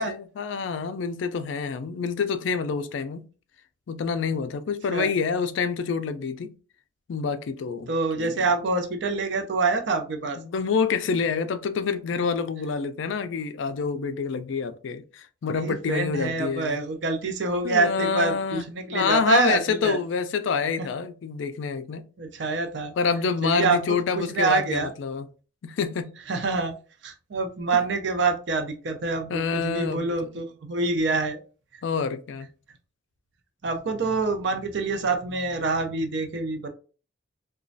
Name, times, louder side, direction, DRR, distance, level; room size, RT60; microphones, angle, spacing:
voice 1, 0.0-3.3 3.9-6.5 7.1-7.9 8.2-8.4 10.4-16.8 17.6-18.7 18.9-22.1 23.0-25.3 25.6-26.1 29.3-30.1 31.8-32.5, left 5 dB, 75° left, 0.4 m, -27 dB
voice 2, 7.9-10.4 15.5-20.0 20.8-20.9 22.2-23.0 23.4-23.8 24.1-24.9 26.3-26.8 27.0-31.4 31.7-31.8 33.6-36.7, right 3 dB, 65° right, 0.5 m, -26 dB
3.0 x 2.2 x 2.6 m
head